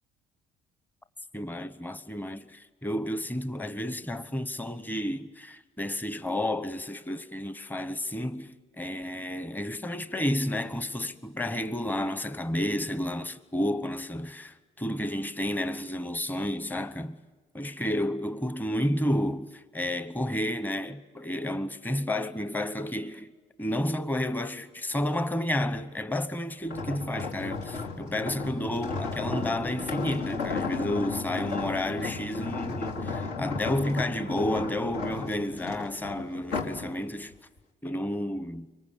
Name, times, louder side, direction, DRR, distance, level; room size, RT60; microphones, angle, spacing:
voice 1, 1.3-17.2 17.5-23.3 23.6-37.3 37.8-38.7, left 1 dB, 10° left, 1.0 m, -31 dB
sound 1, 26.6-36.9 37.3-37.6, left 4 dB, 80° left, 2.7 m, -34 dB
25.5 x 23.5 x 8.4 m
cardioid pair, 110°, 17 cm